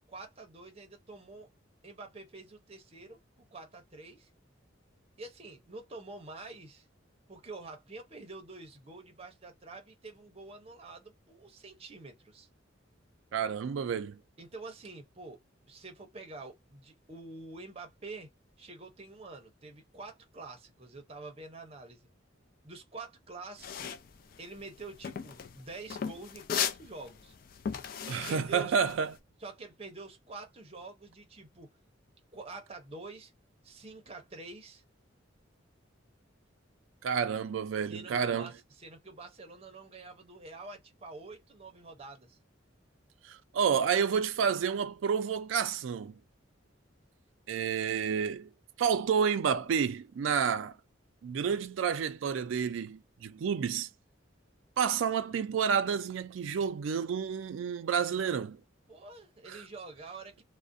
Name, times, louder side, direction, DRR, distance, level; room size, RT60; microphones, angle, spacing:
voice 1, 0.0-1.5 1.8-4.3 5.2-6.9 7.3-12.5 14.4-15.4 15.7-18.3 18.6-22.1 22.6-24.0 24.4-27.3 28.1-28.8 29.4-31.7 32.3-33.3 33.6-34.8 37.8-42.4 58.9-60.4, right 3 dB, 30° right, 0.6 m, -47 dB
voice 2, 13.3-14.2 28.1-29.1 37.0-38.5 43.2-46.2 47.5-48.5 48.8-50.8 51.2-53.9 54.8-58.6 59.5-59.6, right 7 dB, 80° right, 0.3 m, -30 dB
sound 1, 23.6-29.2, left 8 dB, 45° left, 0.3 m, -37 dB
2.4 x 2.1 x 2.5 m
head